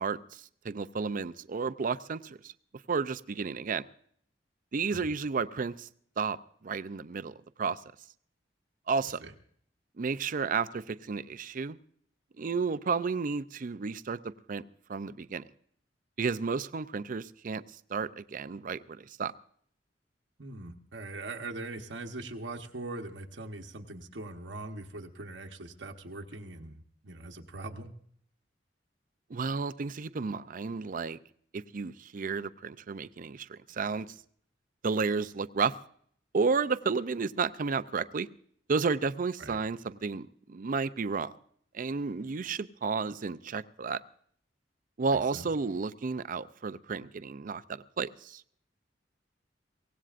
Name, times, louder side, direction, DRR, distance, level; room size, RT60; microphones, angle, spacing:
voice 1, 0.0-2.5 2.9-3.8 4.7-5.9 6.2-6.4 6.6-7.8 8.9-9.2 10.0-11.8 12.4-14.6 14.9-15.4 16.2-19.3 29.3-31.2 31.5-34.1 34.8-35.7 36.3-38.3 38.7-41.3 41.7-44.0 45.0-48.5, right 5 dB, 50° right, 14 dB, 0.5 m, -32 dB
voice 2, 20.4-27.9 39.4-39.6 45.3-45.5, right 2 dB, 85° right, 2 dB, 1.1 m, -41 dB
23.5 x 17.5 x 2.5 m, 0.63 s
head